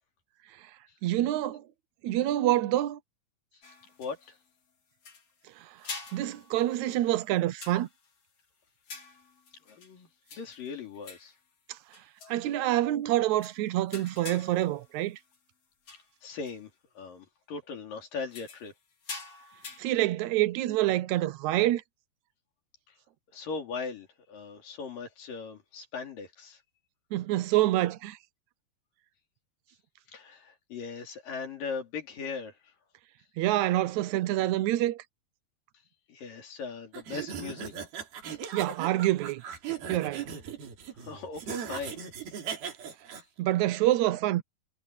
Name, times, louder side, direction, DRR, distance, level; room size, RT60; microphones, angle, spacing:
voice 1, 1.0-1.6 2.0-3.0 5.6-5.8 6.1-7.9 11.7-11.8 12.3-15.2 19.8-21.8 27.1-28.2 33.4-35.0 38.5-39.4 39.9-40.3 43.4-44.4, right 15 dB, 70° right, 1.8 m, -27 dB
sound 1, 3.6-4.5 5.0-5.4 5.8-8.2 8.8-10.0 10.3-11.4 11.9-12.5 13.1-13.2 13.4-13.6 13.9-15.4 15.8-16.1 16.5-16.6 18.2-19.8, left 4 dB, 45° left, 4.4 m, -46 dB
voice 2, 4.0-4.4 9.7-11.3 16.2-18.7 22.9-23.0 23.3-26.6 30.1-32.6 36.1-37.8 40.9-42.0, left 5 dB, 65° left, 5.1 m, -39 dB
sound 2, 36.9-43.2, right 8 dB, 90° right, 5.2 m, -38 dB
omnidirectional pair, 4.2 m